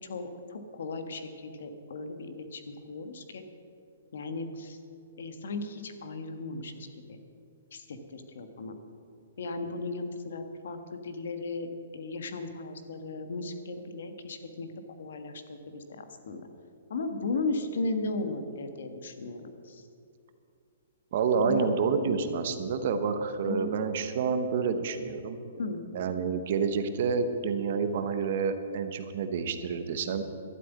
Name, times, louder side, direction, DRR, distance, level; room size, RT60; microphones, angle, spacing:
voice 1, 0.0-2.6 2.9-3.4 4.1-4.8 5.2-7.2 7.7-8.7 9.4-14.7 15.0-16.5 16.9-19.9 21.3-21.7 23.4-23.7 25.6-25.8, left 3 dB, 65° left, 7 dB, 1.4 m, -36 dB
voice 2, 21.1-25.4 25.9-30.2, right 5 dB, 40° right, 9 dB, 0.9 m, -28 dB
12.0 x 7.7 x 9.2 m, 2.5 s
hypercardioid pair, 175°, 0 cm